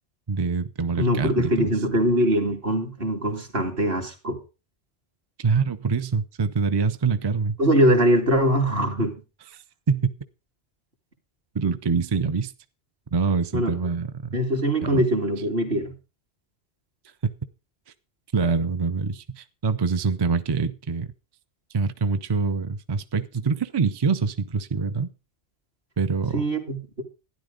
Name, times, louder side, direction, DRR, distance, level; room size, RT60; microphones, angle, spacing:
voice 1, 0.3-1.7 5.4-7.6 9.9-10.1 11.5-12.5 13.1-14.4 14.8-15.0 18.3-21.1 21.7-25.1 26.0-26.4, right 5 dB, 35° right, 0.4 m, -25 dB
voice 2, 1.0-4.4 7.6-9.2 13.5-13.8 14.3-15.9 26.3-27.0, equal, 55° right, 2.4 m, -22 dB
12.5 x 10.5 x 3.8 m
omnidirectional pair, 1.2 m